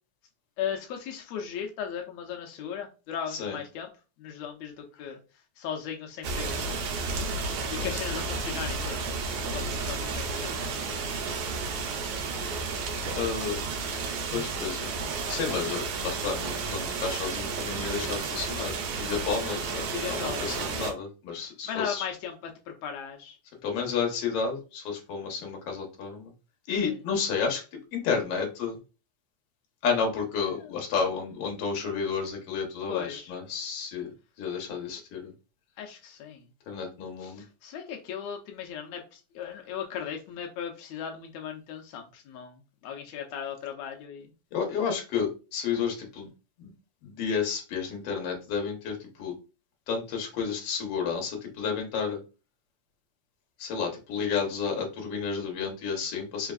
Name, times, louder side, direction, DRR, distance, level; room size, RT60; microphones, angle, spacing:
voice 1, 0.6-3.9 4.2-5.2 5.6-6.8 7.3-9.1 9.5-11.0 19.9-20.9 21.4-22.5 22.8-23.4 26.8-27.0 30.5-30.7 32.9-33.4 35.8-36.4 37.2-44.3, left 8 dB, 90° left, 3 dB, 1.5 m, -37 dB
sound 1, 6.2-20.9, right 4 dB, 70° right, 2.0 m, -32 dB
voice 2, 13.2-13.6 14.3-14.9 15.3-22.0 23.6-26.3 26.7-27.6 27.9-28.8 29.8-34.1 34.4-35.3 36.7-37.4 44.5-46.3 46.6-46.7 47.0-49.3 49.9-52.2 53.6-56.5, left 6 dB, 60° left, 2 dB, 1.7 m, -31 dB
4.8 x 3.4 x 2.4 m, 0.32 s
omnidirectional pair, 3.9 m